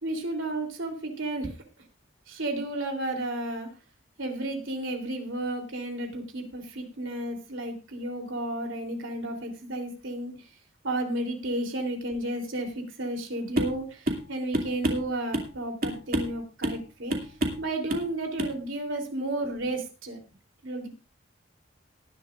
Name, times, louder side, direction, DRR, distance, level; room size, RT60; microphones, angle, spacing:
voice 1, 0.0-1.6 2.3-3.7 4.2-10.5 10.8-17.3 17.6-20.2 20.6-20.9, right 1 dB, 70° right, 3 dB, 3.3 m, -32 dB
sound 1, 13.6-13.8 14.1-14.3 14.5-15.5 15.8-16.4 16.6-16.8 17.1-17.6 17.9-18.1 18.4-18.6, right 1 dB, 50° right, 2.5 m, -28 dB
19.0 x 11.0 x 2.5 m, 0.30 s
head